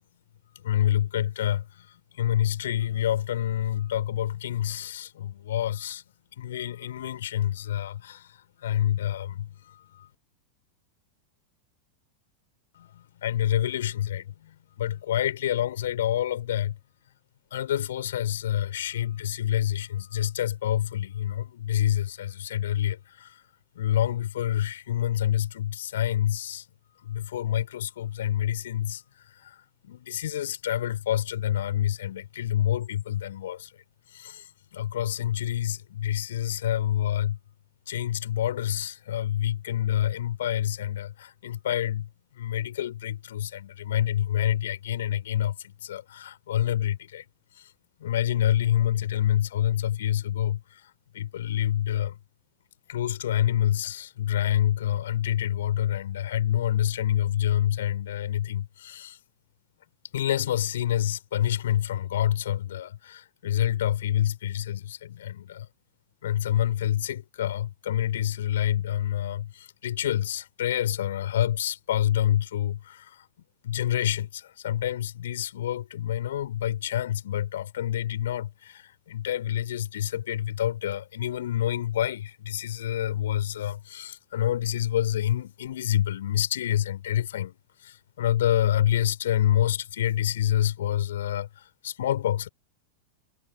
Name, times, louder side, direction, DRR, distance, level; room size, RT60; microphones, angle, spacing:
voice 1, 0.6-6.0 6.4-10.1 12.7-16.8 17.5-23.4 23.8-26.6 27.0-33.7 34.1-37.4 37.9-42.1 42.3-47.2 47.6-47.7 48.0-50.8 51.1-52.2 52.9-59.2 60.1-65.7 66.2-73.3 73.6-87.5 87.8-92.5, left 11 dB, 60° left, 5.9 m, -27 dB
figure-of-eight pair, 90°, 0 cm